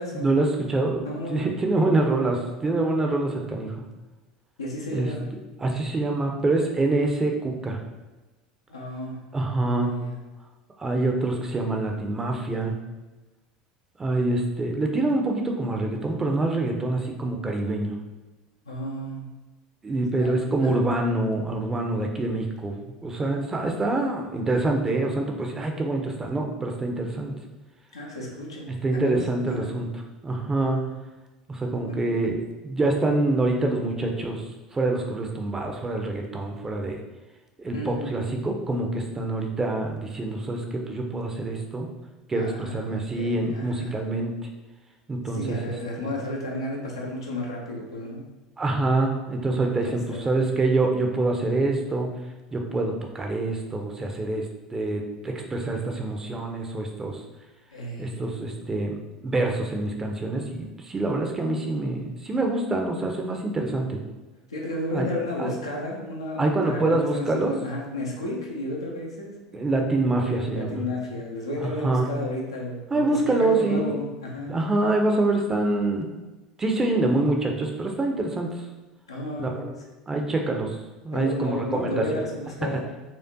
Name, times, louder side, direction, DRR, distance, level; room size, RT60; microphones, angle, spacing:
voice 1, 0.1-3.8 4.9-5.1 5.6-7.8 9.3-9.9 10.8-12.8 14.0-17.9 19.8-27.3 28.7-31.0 31.5-37.0 37.6-41.9 42.3-44.4 45.1-45.6 46.0-46.1 48.6-52.1 52.5-57.2 58.0-64.0 64.9-65.1 65.4-65.6 66.4-67.6 69.5-70.8 71.6-72.1 72.9-73.9 74.5-76.1 76.6-78.7 79.4-79.7 80.1-80.8 81.0-82.3, right 2 dB, 20° right, 2 dB, 0.6 m, -26 dB
voice 2, 1.0-1.5 4.6-5.2 8.7-9.2 9.6-10.2 18.6-19.3 20.2-20.8 27.9-29.7 31.9-32.0 37.7-38.2 42.4-44.1 45.3-48.2 49.8-50.3 57.7-58.3 64.5-69.3 70.2-74.6 79.1-79.6 81.1-82.8, left 1 dB, 80° left, -2 dB, 0.7 m, -33 dB
4.3 x 2.4 x 2.8 m, 1.1 s
figure-of-eight pair, 70°, 3 cm